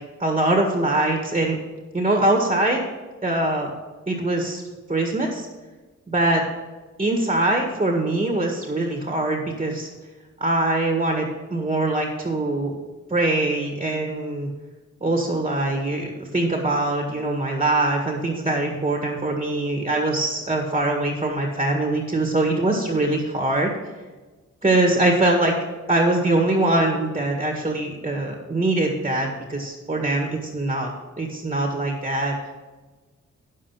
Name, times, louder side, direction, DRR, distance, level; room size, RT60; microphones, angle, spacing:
voice 1, 0.2-1.6 1.9-2.8 3.2-3.7 4.1-4.6 4.9-5.5 6.1-6.4 7.0-9.9 10.4-12.7 13.1-14.5 15.0-23.7 24.6-25.5 25.9-30.9 31.2-32.4, right 2 dB, 20° right, 1 dB, 1.8 m, -22 dB
9.7 x 7.5 x 5.9 m, 1.3 s
cardioid pair, 75°, 32 cm